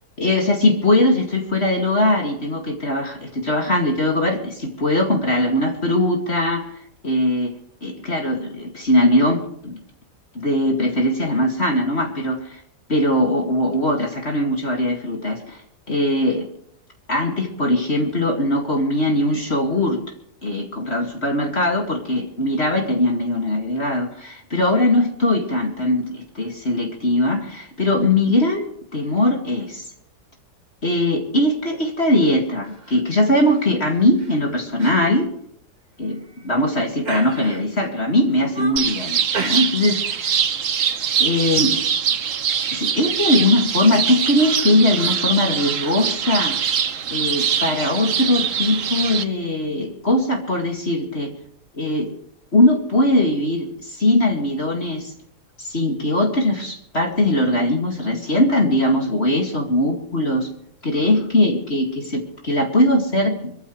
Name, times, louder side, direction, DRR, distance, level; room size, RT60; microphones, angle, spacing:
voice 1, 0.2-6.7 7.0-7.5 7.8-9.8 10.3-12.6 12.9-15.6 15.9-16.5 17.1-20.0 20.4-29.9 30.8-35.3 36.0-40.0 41.2-41.8 42.7-46.6 47.1-51.3 51.7-52.1 52.5-55.1 55.6-60.5 60.8-63.6, left 1 dB, 40° left, 1 dB, 2.5 m, -20 dB
sound 1, 32.7-33.0 33.4-33.7 34.2-34.4 34.8-35.0 35.3-35.4 36.1-36.6 37.0-37.8 38.3-38.9 39.3-40.0 40.3-40.5, right 3 dB, 30° right, 1.4 m, -33 dB
sound 2, 38.8-49.2, right 7 dB, 55° right, 1.2 m, -23 dB
25.5 x 14.0 x 3.2 m, 0.70 s
omnidirectional pair, 1.8 m